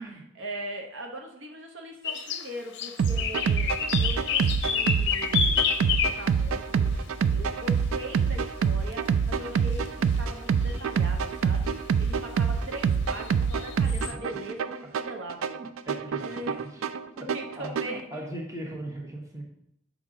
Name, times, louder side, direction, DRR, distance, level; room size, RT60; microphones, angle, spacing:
voice 1, 0.0-9.9 10.2-15.6 16.2-16.6 17.3-18.3, right 1 dB, 60° right, 3 dB, 0.8 m, -40 dB
sound 1, 2.0-2.5 2.7-6.3 7.6-7.7 8.9-9.0 9.9-10.0 10.2-10.3 10.8-10.9 12.4-12.5 13.1-14.1, left 7 dB, 55° left, 0.6 m, -28 dB
sound 2, 3.0-18.0, right 6 dB, 75° right, 0.3 m, -26 dB
voice 2, 15.6-16.8 17.1-19.4, right 1 dB, 15° right, 0 dB, 1.0 m, -39 dB
6.6 x 5.0 x 3.7 m, 0.76 s
head